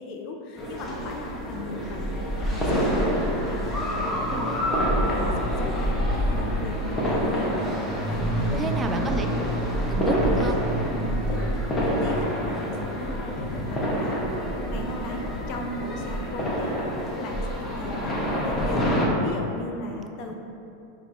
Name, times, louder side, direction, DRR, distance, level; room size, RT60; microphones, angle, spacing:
voice 1, 0.0-2.1 2.5-3.2 3.5-4.8 5.2-7.6 8.1-8.9 10.9-14.3 14.7-16.8 17.2-18.9 19.2-20.3, left 2 dB, 50° left, 2 dB, 0.5 m, -37 dB
sound 1, 0.6-19.1, equal, 15° left, 0.8 m, -26 dB
voice 2, 8.5-9.5 9.9-10.6, right 3 dB, 25° right, 5 dB, 0.3 m, -30 dB
4.4 x 2.2 x 3.8 m, 2.8 s
hypercardioid pair, 95°, 0 cm